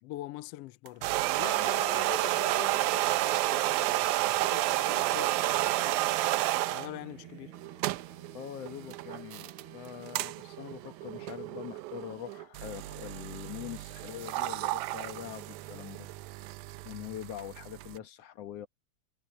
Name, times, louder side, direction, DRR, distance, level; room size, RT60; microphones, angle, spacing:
voice 1, 0.0-6.1 6.6-7.5, left 15 dB, 90° left, 1.3 m, -44 dB
sound 1, 0.9-6.9 7.5-18.0, right 16 dB, 85° right, 2.1 m, -31 dB
Singing / Musical instrument, 2.6-12.2, right 10 dB, 50° right, 1.8 m, -51 dB
voice 2, 8.3-16.1 16.8-18.7, left 11 dB, 60° left, 2.1 m, -43 dB
omnidirectional pair, 3.6 m